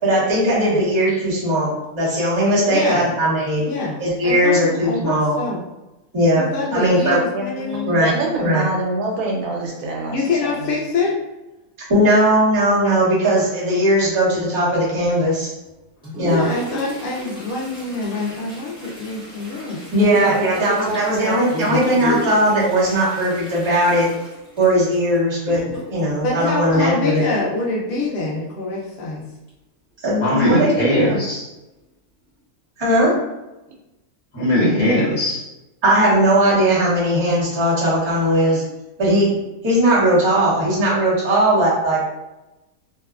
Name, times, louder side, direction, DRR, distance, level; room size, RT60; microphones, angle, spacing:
voice 1, 0.0-3.7 4.0-5.4 6.1-6.5 6.7-7.2 7.8-8.1 8.4-8.6 11.9-15.5 16.2-16.4 19.9-24.1 24.6-25.6 25.9-27.2 30.0-31.2 32.8-33.1 35.8-38.6 39.0-39.4 39.6-42.0, right 1 dB, 25° right, -8 dB, 0.7 m, -18 dB
voice 2, 2.7-3.0 3.6-4.0 4.2-5.6 6.3-8.0 10.1-11.1 16.3-20.3 26.2-29.2, left 3 dB, 85° left, -4 dB, 0.4 m, -25 dB
voice 3, 7.3-10.2 10.4-10.5 20.1-21.4 21.6-21.9, right 2 dB, 80° right, -1 dB, 1.2 m, -26 dB
Toilet flush, 15.6-27.6 29.5-29.6 29.9-30.0 30.8-30.9 31.5-31.8 32.2-32.4, equal, 5° right, 1.0 m, -37 dB
voice 4, 21.5-22.2 30.2-31.4 34.3-35.5, left 1 dB, 40° left, -7 dB, 1.2 m, -20 dB
2.8 x 2.2 x 2.3 m, 1.0 s
omnidirectional pair, 1.6 m